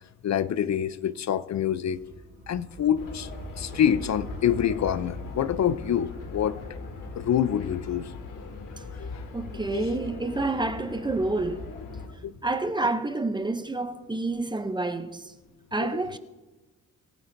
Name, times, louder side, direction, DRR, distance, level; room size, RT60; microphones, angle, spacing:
voice 1, 0.2-2.0 2.5-3.3 3.6-6.8 7.2-8.1 9.0-9.2 9.6-9.9 12.2-12.3 15.8-16.0, left 9 dB, 60° left, 0.5 m, -26 dB
sound 1, 1.9-11.8, right 2 dB, 30° right, 3.0 m, -46 dB
sound 2, 3.0-12.1, left 4 dB, 75° left, 2.1 m, -40 dB
voice 2, 9.3-11.7 12.4-15.3 15.7-16.2, right 2 dB, 15° right, 0.6 m, -28 dB
24.0 x 14.5 x 2.6 m
wide cardioid pair, 170°, 32 cm